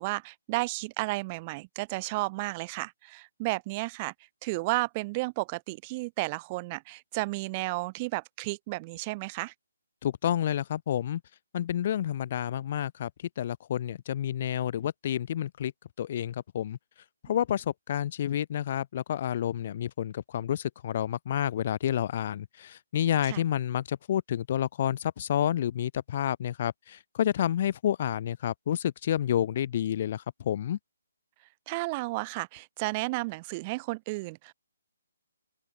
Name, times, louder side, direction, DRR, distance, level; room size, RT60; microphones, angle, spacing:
voice 1, 0.0-4.1 4.4-9.5 23.3-23.4 31.7-34.5, right 24 dB, 25° right, 2.4 m, -32 dB
voice 2, 10.0-11.2 11.5-13.1 13.4-15.7 16.0-16.8 17.2-30.8, left 10 dB, 40° left, 2.4 m, -29 dB
open air
figure-of-eight pair, 145°, 0 cm